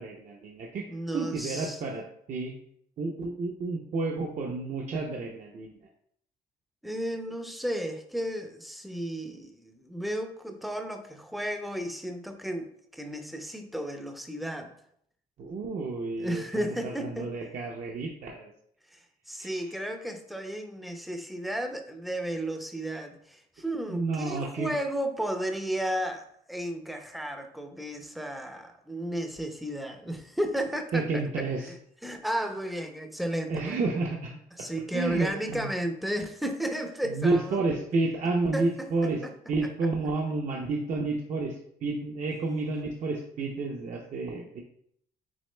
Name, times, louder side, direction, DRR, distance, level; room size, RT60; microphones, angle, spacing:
voice 1, 0.0-0.9 1.1-2.5 3.0-5.8 15.4-18.5 19.4-19.5 23.9-24.7 30.9-31.7 33.5-34.4 34.9-35.7 37.0-39.2 39.5-44.6, right 3 dB, 45° right, 0 dB, 0.6 m, -30 dB
voice 2, 0.9-1.8 6.8-14.7 16.2-17.3 18.9-31.1 31.6-31.7 32.0-33.8 34.6-37.7 38.5-39.3, right 1 dB, ahead, 5 dB, 0.5 m, -33 dB
6.2 x 3.5 x 2.2 m, 0.68 s
cardioid pair, 110°, 17 cm